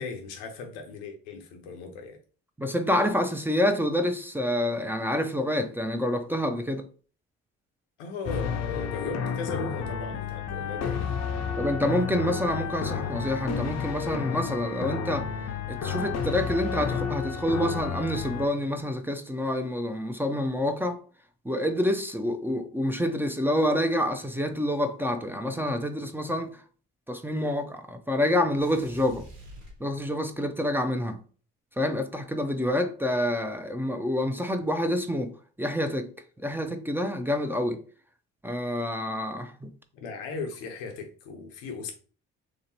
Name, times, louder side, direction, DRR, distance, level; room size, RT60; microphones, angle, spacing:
voice 1, 0.0-2.2 8.0-11.1 39.9-41.9, left 4 dB, 90° left, 0.7 m, -37 dB
voice 2, 2.6-6.8 11.6-15.3 15.7-21.0 21.4-26.6 27.1-29.3 29.8-31.2 31.8-35.3 35.6-36.1 36.4-37.8 38.4-39.7, left 1 dB, 5° right, 0.5 m, -27 dB
sound 1, 8.3-18.5, left 6 dB, 55° left, 0.6 m, -31 dB
sound 2, 28.6-30.4, equal, 75° right, 1.4 m, -46 dB
3.1 x 2.8 x 2.7 m
supercardioid pair, 60°, 33 cm